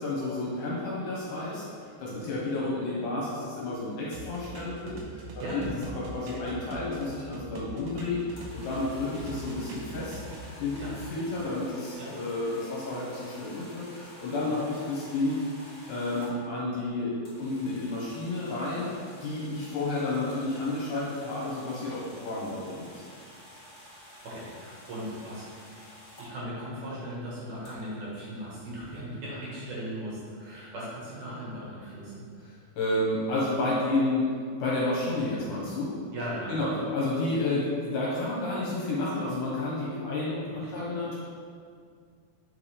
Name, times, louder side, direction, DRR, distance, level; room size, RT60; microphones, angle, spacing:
voice 1, 0.0-5.2 5.5-5.6 6.1-10.2 10.6-15.4 15.9-17.1 17.4-18.9 19.2-23.0 32.8-34.2 34.6-35.9 36.5-36.7 36.9-41.2, left 2 dB, 65° left, -6 dB, 2.4 m, -31 dB
sound 1, 4.1-8.9 9.2-10.9, right 2 dB, 80° right, 2.6 m, -43 dB
voice 2, 5.4-6.2 10.8-11.0 12.0-12.1 14.5-14.6 24.0-25.5 26.2-32.2 36.1-36.5 40.5-40.8, equal, 65° right, -7 dB, 2.6 m, -38 dB
sound 2, 8.4-16.3 17.2-26.3 27.6-27.7, left 1 dB, 90° left, 0.6 m, -50 dB
7.8 x 4.7 x 3.4 m, 2.1 s
omnidirectional pair, 4.5 m